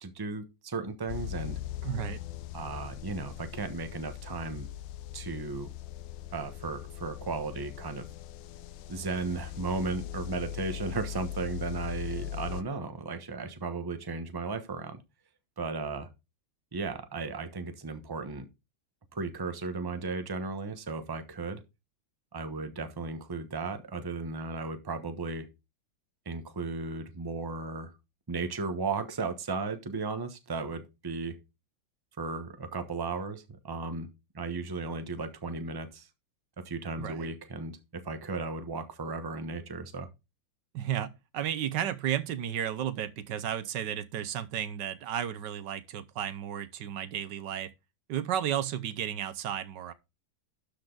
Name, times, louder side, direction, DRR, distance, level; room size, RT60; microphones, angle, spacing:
voice 1, 0.0-1.6 2.5-4.7 5.1-5.7 6.3-8.1 8.9-15.0 15.6-16.1 16.7-18.5 19.1-21.6 22.3-25.5 26.2-27.9 28.3-31.3 32.2-34.1 34.3-36.1 36.6-40.1, right 4 dB, 15° right, 0.8 m, -35 dB
sound 1, 1.1-12.6, left 11 dB, 80° left, 1.4 m, -40 dB
voice 2, 1.8-2.2 37.0-37.3 40.7-47.7 48.1-49.9, right 10 dB, 70° right, 1.4 m, -33 dB
12.0 x 5.1 x 3.9 m
omnidirectional pair, 2.1 m